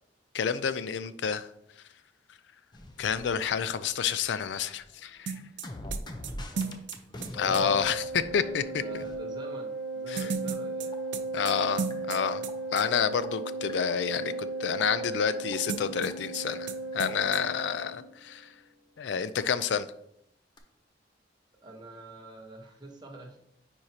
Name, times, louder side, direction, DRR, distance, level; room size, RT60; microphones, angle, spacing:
voice 1, 0.3-1.5 3.0-5.3 7.3-8.6 11.3-12.4 12.7-18.5 19.0-19.9, left 7 dB, 75° left, 14 dB, 0.4 m, -29 dB
sound 1, 2.7-4.2 4.5-9.2 10.9-18.8 20.6-20.7, left 1 dB, 25° left, 0.7 m, -45 dB
sound 2, 5.3-7.6 10.2-12.5 12.8-12.9 15.7-16.4 16.7-16.8 17.0-17.4, right 5 dB, 80° right, 0.6 m, -35 dB
voice 2, 6.2-7.5 8.3-11.0 17.8-18.0 21.6-23.4, right 2 dB, 25° right, 1 dB, 1.1 m, -47 dB
Organ, 7.3-18.1, right 2 dB, ahead, 1.2 m, -36 dB
9.6 x 4.5 x 2.8 m, 0.74 s
head